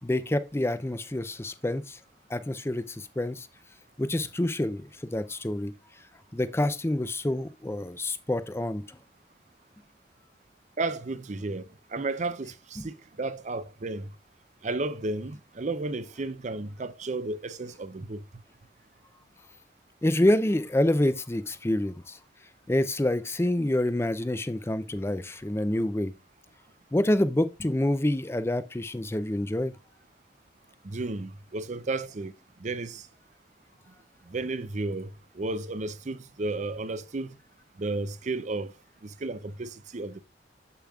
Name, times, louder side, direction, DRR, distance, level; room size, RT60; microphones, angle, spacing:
voice 1, 0.0-2.0 2.3-3.5 4.0-5.7 6.3-9.0 12.8-12.9 20.0-22.2 22.7-26.1 26.9-29.7, left 1 dB, 15° left, 0.5 m, -27 dB
voice 2, 10.8-14.1 14.6-18.2 30.8-32.3 32.6-33.1 34.3-37.4 37.8-38.7 39.0-40.2, right 2 dB, 40° right, 0.6 m, -33 dB
7.8 x 6.8 x 2.3 m
head